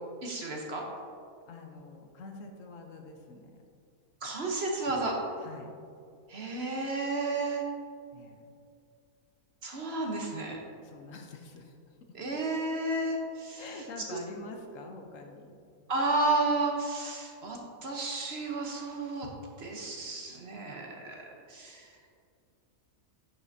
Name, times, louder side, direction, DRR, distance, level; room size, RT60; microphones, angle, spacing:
voice 1, 0.2-0.8 4.2-5.2 6.3-7.6 9.6-10.6 12.1-13.7 14.1-14.2 15.9-19.3 19.6-21.9, right 2 dB, 50° right, 0 dB, 1.1 m, -32 dB
voice 2, 1.5-3.6 5.4-5.7 8.1-8.4 10.7-11.7 13.6-15.6, left 3 dB, 65° left, 3 dB, 1.1 m, -46 dB
11.0 x 5.8 x 2.7 m, 2.4 s
omnidirectional pair, 1.5 m